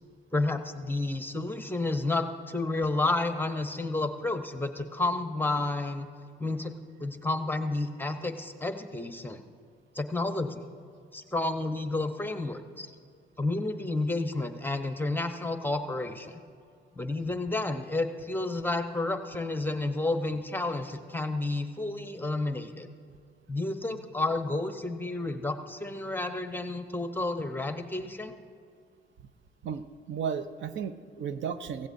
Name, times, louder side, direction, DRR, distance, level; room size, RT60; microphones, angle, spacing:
voice 1, 0.3-6.1 6.4-6.7 7.0-9.4 9.9-10.6 11.1-12.9 13.4-16.4 16.9-22.9 23.5-28.3, left 2 dB, 10° left, 7 dB, 0.9 m, -31 dB
voice 2, 29.6-31.9, right 7 dB, 70° right, 11 dB, 0.7 m, -34 dB
16.0 x 16.0 x 2.7 m, 2.2 s
cardioid pair, 90°, 20 cm